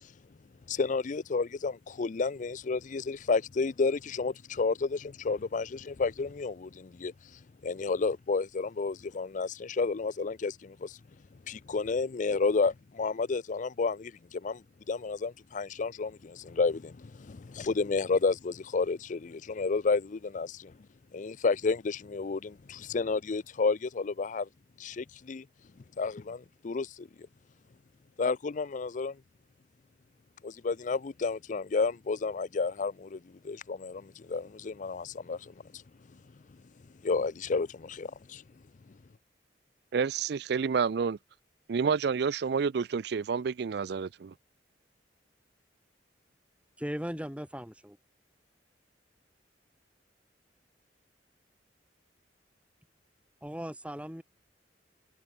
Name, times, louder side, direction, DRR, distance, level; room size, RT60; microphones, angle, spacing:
voice 1, 0.7-11.0 11.5-20.7 21.1-24.5 24.8-25.4 26.0-27.1 28.2-29.2 30.4-35.8 37.0-38.4, left 4 dB, 45° left, 0.4 m, -31 dB
voice 2, 39.9-41.2 41.7-44.3, right 6 dB, 60° right, 0.4 m, -29 dB
voice 3, 46.8-48.0 53.4-54.2, equal, 5° right, 2.6 m, -38 dB
head